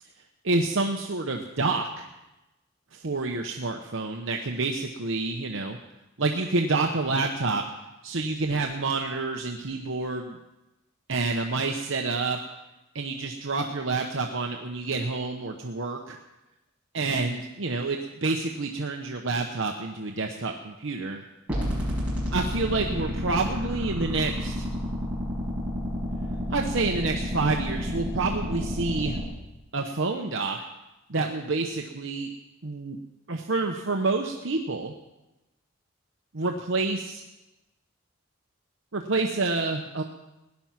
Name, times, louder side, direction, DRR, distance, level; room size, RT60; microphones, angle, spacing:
voice 1, 0.4-2.1 2.9-5.8 6.2-7.6 8.0-10.4 11.1-12.4 12.9-16.2 16.9-21.2 22.3-24.7 26.5-29.2 29.7-30.6 31.1-32.3 32.6-33.0 33.3-34.9 36.3-37.2 38.9-40.0, right 3 dB, 65° right, 3 dB, 0.9 m, -28 dB
sound 1, 21.5-29.2, equal, 5° right, 5.4 m, -30 dB
17.0 x 10.5 x 5.9 m, 0.99 s
head